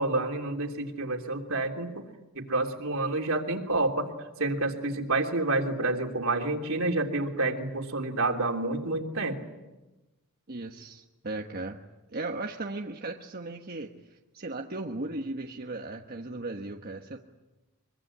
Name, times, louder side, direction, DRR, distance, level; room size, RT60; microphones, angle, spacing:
voice 1, 0.0-2.0 2.3-9.4, right 2 dB, 70° right, 3 dB, 3.3 m, -29 dB
voice 2, 10.5-11.8 12.1-17.2, right 2 dB, 45° right, 2 dB, 1.3 m, -37 dB
24.5 x 23.5 x 10.0 m, 1.1 s
head